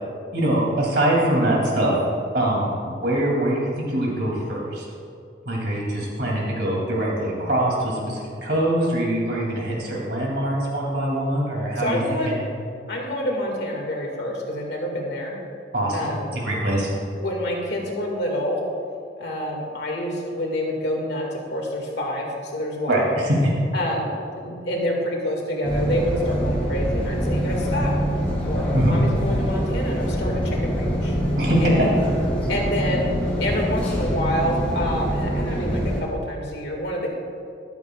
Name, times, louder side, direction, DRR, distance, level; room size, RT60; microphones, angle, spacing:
voice 1, 0.3-2.0 2.3-2.7 3.0-4.8 5.5-12.3 15.7-16.1 16.4-16.9 22.9-23.4 28.7-29.0 31.4-31.9, right 1 dB, 60° right, -3 dB, 2.8 m, -23 dB
voice 2, 11.8-12.4 12.9-15.4 15.9-16.3 17.2-18.6 19.2-23.2 23.7-24.1 24.4-27.9 28.4-31.2 31.6-31.9 32.5-33.1 33.4-37.1, left 1 dB, 65° left, 0 dB, 2.0 m, -27 dB
sound 1, 25.6-36.0, equal, 10° left, 2.5 m, -25 dB
14.0 x 11.5 x 2.4 m, 2.5 s
head